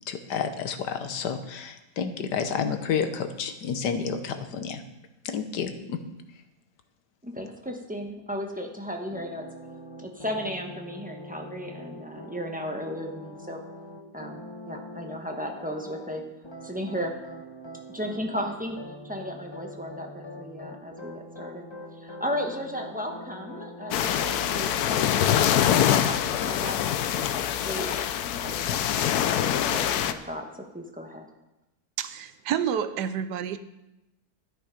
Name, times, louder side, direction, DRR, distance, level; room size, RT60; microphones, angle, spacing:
voice 1, 0.1-4.8 5.2-6.0, left 6 dB, 90° left, 8 dB, 1.6 m, -30 dB
voice 2, 7.2-9.5 10.0-13.6 14.1-16.2 16.6-17.1 17.9-21.6 21.9-24.1 24.4-25.6 26.0-28.1 28.4-30.4 30.7-31.2, equal, 5° right, 2 dB, 1.0 m, -35 dB
sound 1, 9.1-16.2 16.4-25.1, left 1 dB, 20° left, 0.9 m, -43 dB
sound 2, 23.9-30.1, left 10 dB, 70° left, 1.1 m, -24 dB
voice 3, 32.0-33.6, right 9 dB, 80° right, 12 dB, 1.3 m, -29 dB
12.0 x 10.0 x 5.1 m, 0.95 s
omnidirectional pair, 1.7 m